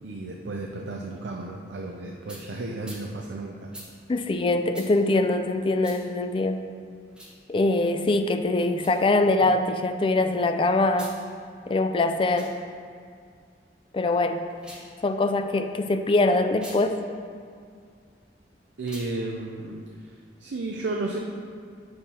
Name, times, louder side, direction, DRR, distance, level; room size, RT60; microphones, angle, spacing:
voice 1, 0.0-3.7 18.8-20.1 20.4-21.2, right 2 dB, 75° right, 0 dB, 0.5 m, -33 dB
sound 1, 2.3-2.4 2.8-3.0 3.7-3.9 4.7-4.9 5.8-6.0 7.1-7.4 8.7-9.0 10.9-11.2 12.2-12.5 14.5-14.9 16.5-16.8 18.8-19.1, right 1 dB, 5° right, 0.9 m, -44 dB
voice 2, 4.1-6.6 7.5-11.1 11.7-12.5 13.9-14.4 15.0-17.0, left 2 dB, 30° left, 7 dB, 0.3 m, -23 dB
8.8 x 6.4 x 2.8 m, 2.2 s
head